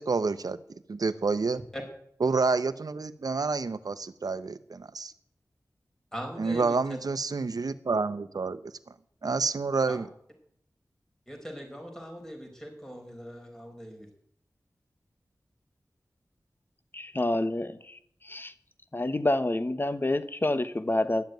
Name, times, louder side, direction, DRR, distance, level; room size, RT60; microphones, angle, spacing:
voice 1, 0.0-1.6 2.2-5.1 6.4-8.7 9.2-10.1, right 4 dB, 70° right, 14 dB, 0.8 m, -29 dB
voice 2, 6.1-7.0 9.9-10.0 11.3-14.1, equal, 5° left, 2 dB, 5.0 m, -40 dB
voice 3, 16.9-18.0 18.2-18.5 18.9-21.2, left 1 dB, 30° left, 12 dB, 1.1 m, -28 dB
12.0 x 7.5 x 9.2 m, 0.66 s
wide cardioid pair, 50°, 7 cm